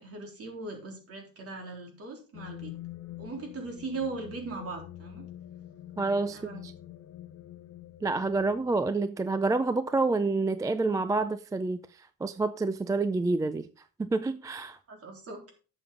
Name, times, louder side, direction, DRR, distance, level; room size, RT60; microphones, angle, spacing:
voice 1, 0.0-2.7 3.2-5.2 6.3-6.6 14.9-15.5, right 3 dB, 45° right, 3.6 m, -39 dB
sound 1, 2.3-8.9, left 13 dB, 55° left, 0.9 m, -46 dB
voice 2, 6.0-6.7 8.0-13.7 14.0-14.8, right 3 dB, 10° right, 0.3 m, -28 dB
11.0 x 7.2 x 3.7 m
cardioid pair, 125°, 33 cm